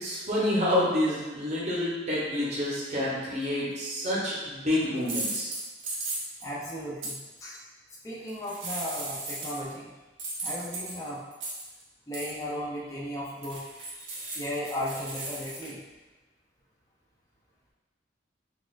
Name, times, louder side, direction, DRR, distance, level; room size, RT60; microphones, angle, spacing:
voice 1, 0.0-5.5, left 1 dB, 35° right, -7 dB, 0.7 m, -28 dB
sound 1, 3.8-4.0 5.0-6.5 7.0-7.1 8.3-9.7 10.2-11.8 12.1-12.4 13.4-15.7, right 2 dB, 75° right, 0.7 m, -36 dB
voice 2, 6.4-7.6 8.0-9.9 10.4-11.2 12.1-13.6 14.0-15.8, equal, 15° left, -6 dB, 0.4 m, -36 dB
4.0 x 2.3 x 2.4 m, 1.2 s
head